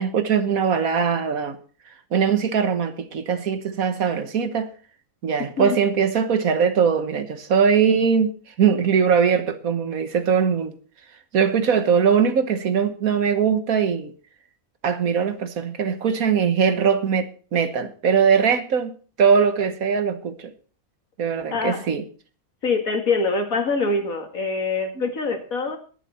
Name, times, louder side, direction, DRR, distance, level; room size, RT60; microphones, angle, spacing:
voice 1, 0.0-1.6 2.1-4.7 5.2-10.8 11.3-14.1 14.8-18.9 19.2-20.5 21.2-22.0, right 6 dB, 80° right, 1.6 m, -21 dB
voice 2, 21.5-21.9 22.6-25.8, left 4 dB, 75° left, 2.4 m, -24 dB
21.5 x 7.4 x 4.2 m
omnidirectional pair, 1.5 m